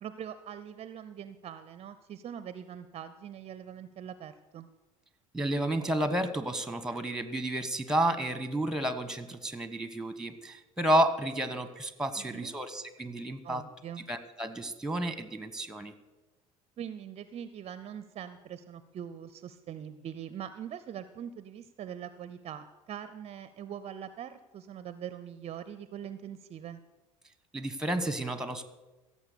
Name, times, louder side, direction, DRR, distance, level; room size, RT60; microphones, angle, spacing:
voice 1, 0.0-4.7 12.2-12.6 13.4-14.1 16.8-26.8, right 9 dB, 35° right, 13 dB, 0.6 m, -42 dB
voice 2, 5.3-13.6 14.1-15.9 27.5-28.7, right 1 dB, 5° right, 12 dB, 1.2 m, -31 dB
16.0 x 7.3 x 6.7 m, 1.1 s
figure-of-eight pair, 65°, 18 cm